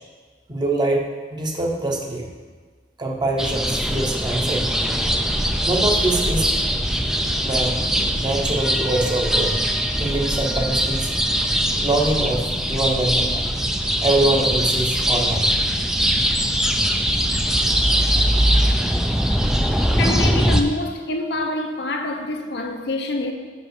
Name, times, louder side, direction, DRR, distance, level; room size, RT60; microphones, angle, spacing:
voice 1, 0.5-1.0 1.3-2.3 3.0-4.9 5.6-6.5 7.4-7.9 8.2-9.7 10.0-11.1 11.8-13.4 14.0-15.5, right 2 dB, 25° right, 0.9 m, -24 dB
sound 1, 3.4-20.6, equal, 5° right, 0.4 m, -21 dB
voice 2, 20.0-23.3, left 2 dB, 70° left, 0.7 m, -26 dB
5.4 x 5.4 x 6.5 m
head